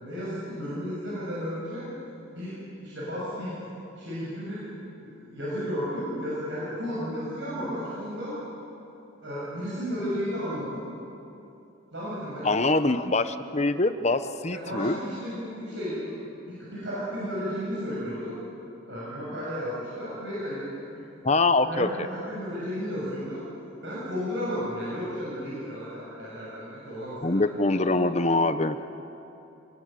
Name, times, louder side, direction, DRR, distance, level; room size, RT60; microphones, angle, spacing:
voice 1, 0.0-1.9 2.4-3.6 4.0-4.7 5.0-8.4 9.2-10.8 11.9-12.6 14.5-16.2 16.4-18.4 18.9-20.7 21.6-23.4 23.8-27.9, equal, 65° right, -7 dB, 7.2 m, -33 dB
voice 2, 12.4-15.0 21.2-21.9 27.2-28.8, left 2 dB, 35° left, 10 dB, 0.9 m, -24 dB
27.5 x 21.0 x 9.1 m, 2.8 s
head